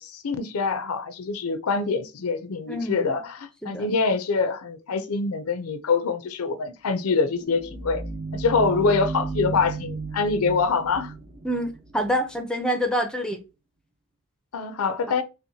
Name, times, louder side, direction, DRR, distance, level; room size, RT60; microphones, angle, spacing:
voice 1, 0.0-8.0 8.3-11.1 14.5-15.2, left 4 dB, 75° left, 0.5 m, -25 dB
voice 2, 2.7-3.2 3.6-3.9 11.4-13.4, equal, 5° left, 0.5 m, -27 dB
sound 1, 7.0-12.4, right 3 dB, 55° right, 0.8 m, -34 dB
5.6 x 2.1 x 2.7 m
head